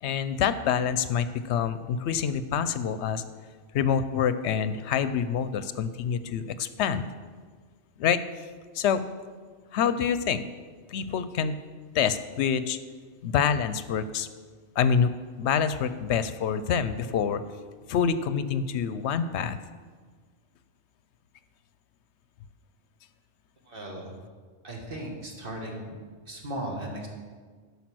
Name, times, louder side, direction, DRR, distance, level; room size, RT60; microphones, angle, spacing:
voice 1, 0.0-3.2 3.7-7.1 8.0-8.2 8.7-9.0 9.7-10.4 10.9-11.6 11.9-12.8 13.2-14.3 14.8-15.1 15.4-17.4 17.9-19.6, left 7 dB, 75° left, 13 dB, 0.8 m, -26 dB
voice 2, 23.7-24.2 24.6-26.0 26.3-27.1, right 1 dB, 50° right, 0 dB, 1.8 m, -36 dB
11.5 x 5.6 x 6.1 m, 1.5 s
omnidirectional pair, 1.2 m